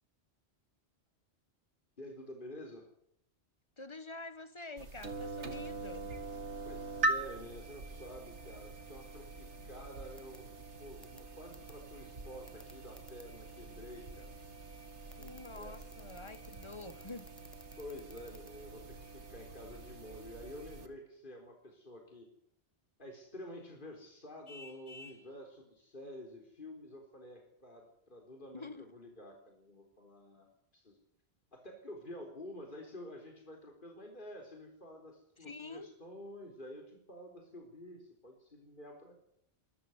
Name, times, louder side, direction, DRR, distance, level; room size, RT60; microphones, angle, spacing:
voice 1, 2.0-2.8 6.6-10.5 10.8-14.8 15.2-15.3 15.6-15.7 17.8-22.3 23.0-30.5 30.7-31.0 31.5-39.1, left 1 dB, 45° left, 4.3 m, -49 dB
voice 2, 3.8-6.1 15.1-17.3 28.5-28.9 35.4-35.9, left 3 dB, 25° left, 1.1 m, -47 dB
sound 1, 4.8-20.9, right 3 dB, 90° right, 2.3 m, -43 dB
sound 2, 10.2-10.4 11.0-11.2 11.5-11.7 12.5-13.2 15.1-18.5, equal, ahead, 1.5 m, -55 dB
Vehicle horn car horn honking, 24.5-25.3, left 2 dB, 70° left, 2.6 m, -51 dB
23.5 x 14.0 x 9.5 m
omnidirectional pair, 1.1 m